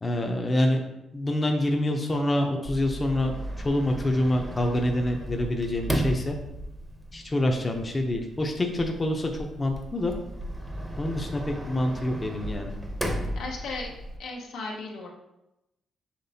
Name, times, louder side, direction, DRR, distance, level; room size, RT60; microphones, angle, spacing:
voice 1, 0.0-0.8 1.1-3.3 3.6-6.4 7.1-9.3 9.6-10.1 11.0-12.7, left 1 dB, 25° left, 2 dB, 0.6 m, -26 dB
Sliding door, 2.6-14.2, equal, 10° right, 0.7 m, -35 dB
voice 2, 13.3-13.9 14.2-15.1, left 3 dB, 80° left, -1 dB, 0.9 m, -35 dB
5.9 x 3.1 x 2.7 m, 0.91 s
cardioid pair, 75°, 0 cm